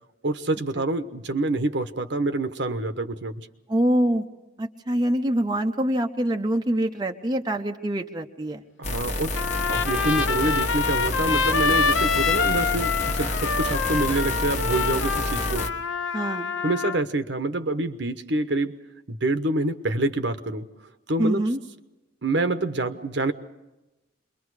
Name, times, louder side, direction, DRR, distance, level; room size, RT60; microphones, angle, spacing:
voice 1, 0.2-3.3 8.8-9.4 9.7-15.7 16.6-18.8 19.1-20.7 21.1-21.4 22.2-23.3, right 2 dB, 60° right, 9 dB, 1.1 m, -26 dB
voice 2, 3.7-4.3 4.6-8.6 16.1-16.5 21.2-21.6, right 1 dB, 20° right, 3 dB, 0.8 m, -25 dB
sound 1, 8.8-15.7, left 2 dB, 35° left, 1.4 m, -28 dB
Trumpet, 9.3-17.0, left 5 dB, 75° left, 0.8 m, -26 dB
28.0 x 22.5 x 4.9 m, 1.0 s
head